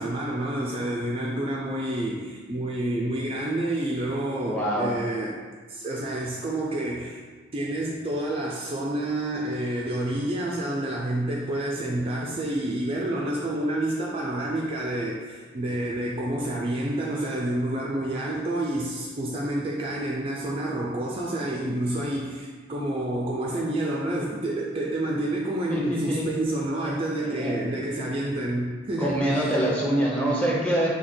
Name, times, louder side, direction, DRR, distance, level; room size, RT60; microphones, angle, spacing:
voice 1, 0.0-5.4 5.7-7.2 7.5-29.4, right 1 dB, 30° right, -2 dB, 0.4 m, -29 dB
voice 2, 4.4-4.9 25.7-26.3 26.8-26.9 27.2-27.5 29.0-30.9, right 1 dB, 5° left, -5 dB, 0.8 m, -25 dB
4.1 x 2.8 x 4.3 m, 1.5 s
head